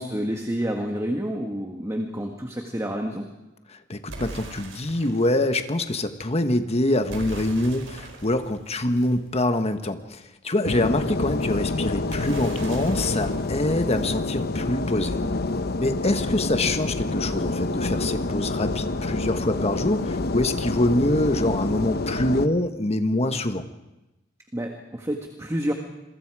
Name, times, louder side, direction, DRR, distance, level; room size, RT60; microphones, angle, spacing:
voice 1, 0.0-3.3 24.5-25.7, equal, 15° right, 2 dB, 1.8 m, -29 dB
voice 2, 3.7-15.2 15.8-23.6, left 1 dB, 35° left, 8 dB, 1.4 m, -25 dB
sound 1, 4.1-5.3 7.1-9.8 12.1-14.8, right 2 dB, 75° right, 5.1 m, -40 dB
sound 2, 10.6-22.5, left 2 dB, 55° left, 0.9 m, -27 dB
27.5 x 23.5 x 4.9 m, 1.0 s
head